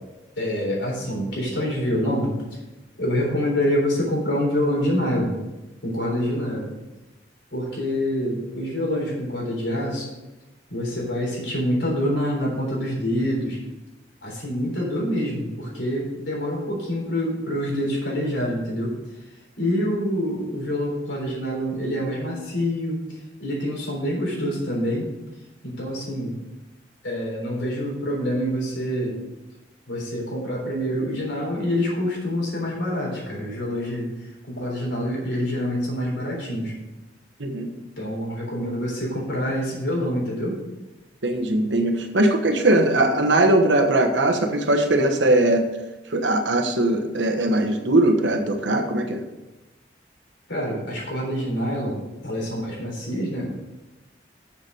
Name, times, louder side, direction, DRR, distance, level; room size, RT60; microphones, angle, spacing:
voice 1, 0.4-2.3 3.0-5.4 5.8-6.7 7.5-10.1 10.7-13.6 14.2-19.0 19.6-25.1 25.6-26.4 27.0-29.2 29.9-34.1 34.5-36.7 38.0-40.6 50.5-53.5, equal, 85° left, -2 dB, 3.7 m, -26 dB
voice 2, 41.2-45.6 46.1-49.2, right 1 dB, 85° right, 5 dB, 1.1 m, -20 dB
7.0 x 6.8 x 6.3 m, 1.0 s
head